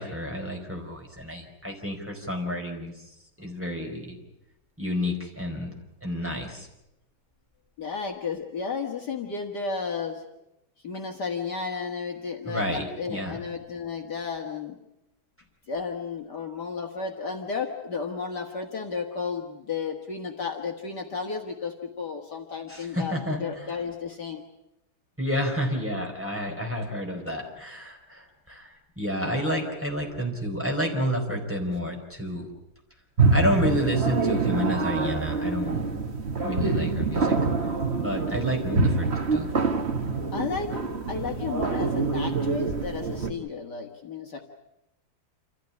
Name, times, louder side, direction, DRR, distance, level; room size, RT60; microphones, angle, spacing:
voice 1, 0.0-2.9 3.4-4.2 4.8-5.7 6.0-6.7 12.5-13.4 22.7-23.4 25.2-32.5 33.3-35.8 36.4-37.4 37.9-39.5, equal, 5° right, 0 dB, 4.4 m, -30 dB
voice 2, 7.8-10.2 10.8-14.8 15.7-24.4 40.3-40.7 41.1-44.4, left 5 dB, 55° left, 3 dB, 2.2 m, -33 dB
sound 1, 33.2-43.3, right 4 dB, 35° right, 1.7 m, -26 dB
28.0 x 14.5 x 9.8 m, 0.87 s
omnidirectional pair, 2.2 m